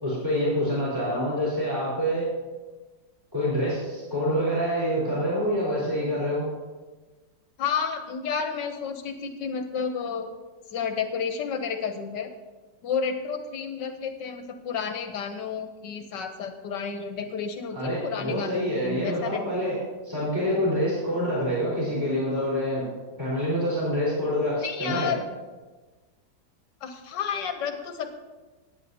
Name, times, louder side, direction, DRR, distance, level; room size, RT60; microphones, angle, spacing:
voice 1, 0.0-2.2 3.3-6.5 17.7-19.8 20.0-22.8 23.2-25.1, equal, 10° right, -8 dB, 4.1 m, -26 dB
voice 2, 7.6-10.3 10.7-12.3 12.8-19.8 24.6-25.3 26.8-28.1, left 6 dB, 75° left, 7 dB, 1.5 m, -31 dB
19.0 x 9.0 x 2.8 m, 1.3 s
omnidirectional pair, 2.0 m